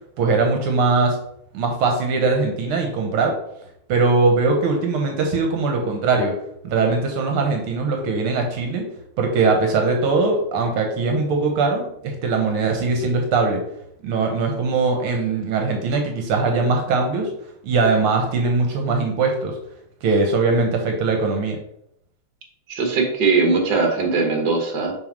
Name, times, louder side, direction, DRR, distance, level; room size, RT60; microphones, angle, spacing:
voice 1, 0.2-1.2 1.5-3.3 3.9-6.4 6.6-8.9 9.2-13.6 14.0-17.3 17.6-19.6 20.0-21.6, right 3 dB, 80° right, 3 dB, 1.8 m, -21 dB
voice 2, 22.7-24.9, right 4 dB, 55° right, 3 dB, 1.8 m, -20 dB
6.3 x 3.5 x 5.1 m, 0.75 s
omnidirectional pair, 2.4 m